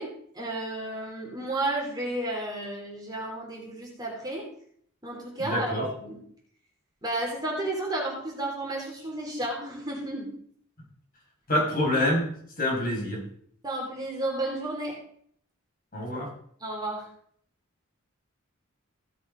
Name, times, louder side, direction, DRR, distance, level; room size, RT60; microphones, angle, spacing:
voice 1, 0.0-4.5 5.0-6.2 7.0-10.3 13.6-15.0 16.6-17.1, right 1 dB, 20° right, -2 dB, 3.5 m, -32 dB
voice 2, 5.4-5.9 11.5-12.3 12.6-13.2 15.9-16.3, left 1 dB, 45° left, -3 dB, 5.3 m, -26 dB
16.0 x 6.9 x 5.2 m, 0.63 s
head